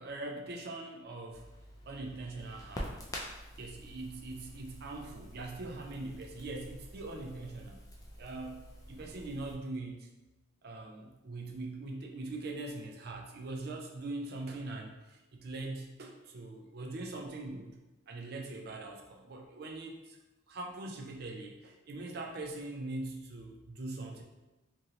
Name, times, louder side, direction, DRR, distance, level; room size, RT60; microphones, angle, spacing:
voice 1, 0.0-1.4 1.9-2.9 3.6-7.8 8.2-10.1 10.6-17.8 18.1-20.2 20.5-24.2, right 2 dB, 50° right, 2 dB, 0.4 m, -42 dB
Crackle, 1.3-9.5, equal, 15° left, 0.4 m, -47 dB
3.1 x 2.6 x 2.7 m, 1.1 s
head